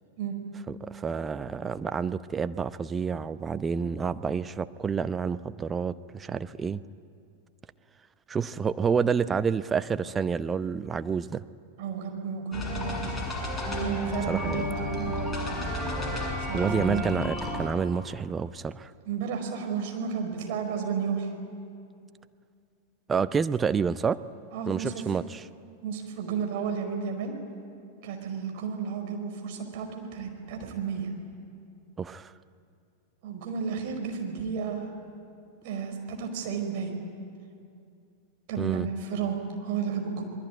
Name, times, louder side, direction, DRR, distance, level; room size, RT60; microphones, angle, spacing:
voice 1, 0.7-6.8 8.3-11.4 14.3-14.6 16.5-18.9 23.1-24.2 24.7-25.4 32.0-32.3 38.6-38.9, right 6 dB, 20° right, 13 dB, 0.7 m, -29 dB
voice 2, 11.8-13.2 13.7-15.5 16.5-17.0 19.1-21.3 24.5-25.0 25.8-27.3 28.0-31.1 33.2-34.9 35.6-36.9 38.5-40.2, right 6 dB, 50° right, 3 dB, 5.0 m, -32 dB
sound 1, 12.5-17.6, left 1 dB, 10° left, 7.4 m, -31 dB
28.5 x 21.0 x 9.4 m, 2.4 s
figure-of-eight pair, 90°, 0 cm